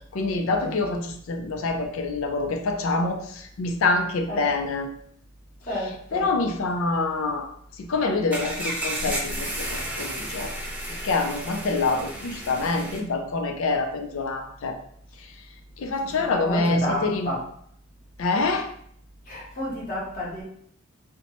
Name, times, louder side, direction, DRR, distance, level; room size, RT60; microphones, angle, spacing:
voice 1, 0.1-4.9 6.1-7.5 7.8-9.7 10.0-10.5 11.0-14.8 15.8-17.3 18.2-18.7, left 3 dB, 70° left, 5 dB, 0.4 m, -26 dB
voice 2, 5.7-6.3 16.0-16.2 16.4-17.4 19.3-20.4, left 1 dB, 40° left, -5 dB, 0.9 m, -31 dB
sound 1, 8.3-13.0, right 1 dB, 5° right, 0.3 m, -32 dB
2.9 x 2.1 x 2.9 m, 0.66 s
head